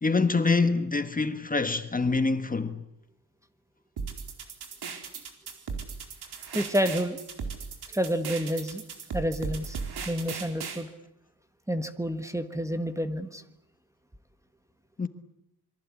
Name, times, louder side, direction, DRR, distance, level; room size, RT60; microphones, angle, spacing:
voice 1, 0.0-2.8 15.0-15.1, left 3 dB, 20° left, 1.4 m, -25 dB
sound 1, 4.0-10.8, right 5 dB, 80° right, 4.3 m, -37 dB
voice 2, 6.5-7.2 7.9-8.8 9.1-9.8 10.1-10.9 11.7-13.4, equal, 10° right, 1.4 m, -29 dB
27.0 x 23.0 x 8.4 m
wide cardioid pair, 150°, 39 cm